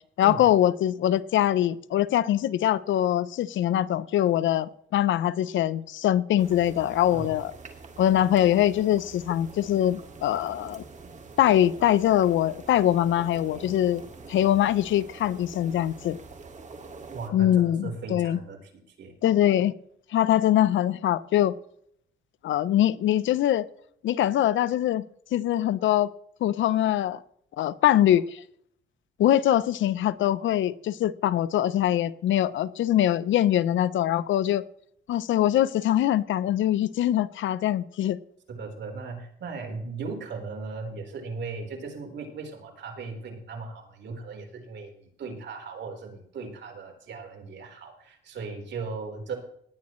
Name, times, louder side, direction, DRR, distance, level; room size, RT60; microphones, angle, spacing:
voice 1, 0.2-7.5 8.0-10.8 11.4-14.0 14.3-16.2 17.3-18.4 19.2-19.7 20.1-21.5 22.4-23.7 24.0-25.0 25.3-26.1 26.4-27.2 27.6-28.4 29.2-34.6 35.1-38.2, left 12 dB, 75° left, 17 dB, 0.7 m, -23 dB
sound 1, 6.4-17.3, right 4 dB, 40° right, 2.2 m, -45 dB
voice 2, 17.1-19.1 38.5-49.4, right 4 dB, 65° right, 3 dB, 4.1 m, -37 dB
19.0 x 9.7 x 3.1 m, 0.68 s
cardioid pair, 90°, 20 cm